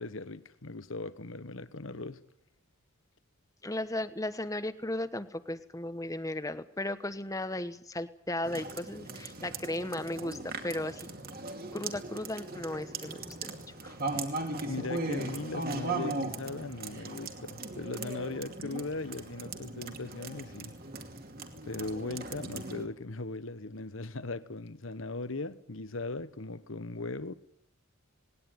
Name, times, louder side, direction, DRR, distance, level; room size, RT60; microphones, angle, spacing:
voice 1, 0.0-2.2 14.1-14.2 14.7-20.8 21.7-27.3, left 3 dB, 65° left, 1.2 m, -38 dB
voice 2, 3.6-11.0 11.7-14.0, left 1 dB, 15° left, 1.1 m, -36 dB
sound 1, 8.4-22.9, right 3 dB, 45° right, 2.6 m, -38 dB
19.5 x 18.5 x 9.6 m
head